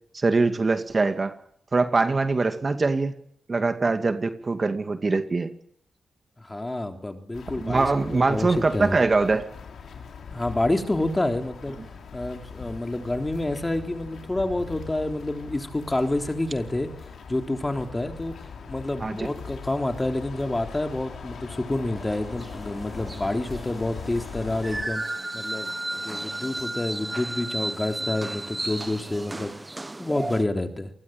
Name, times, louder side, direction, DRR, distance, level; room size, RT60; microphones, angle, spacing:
voice 1, 0.1-1.3 1.7-3.1 3.5-5.5 7.6-9.5 19.0-19.3, right 3 dB, 40° right, 8 dB, 2.3 m, -23 dB
voice 2, 6.4-9.0 10.3-11.8 12.1-16.9 17.3-18.3 18.7-29.5 30.0-30.9, left 1 dB, 20° left, 5 dB, 3.6 m, -28 dB
sound 1, 7.3-24.9, left 6 dB, 75° left, 5.3 m, -40 dB
sound 2, 21.9-30.4, right 2 dB, 20° right, 1.1 m, -34 dB
27.0 x 20.5 x 9.0 m, 0.67 s
cardioid pair, 60°, 0 cm